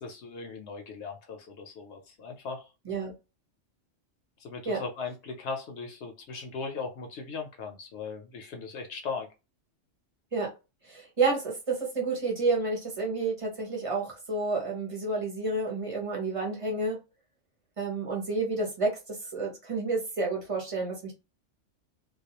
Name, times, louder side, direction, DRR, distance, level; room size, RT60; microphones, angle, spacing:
voice 1, 0.0-2.6 4.4-9.3, left 4 dB, 70° left, 4 dB, 0.8 m, -38 dB
voice 2, 10.8-17.0 17.8-21.2, right 3 dB, 30° right, 0 dB, 0.7 m, -30 dB
2.3 x 2.2 x 2.8 m, 0.28 s
omnidirectional pair, 1.3 m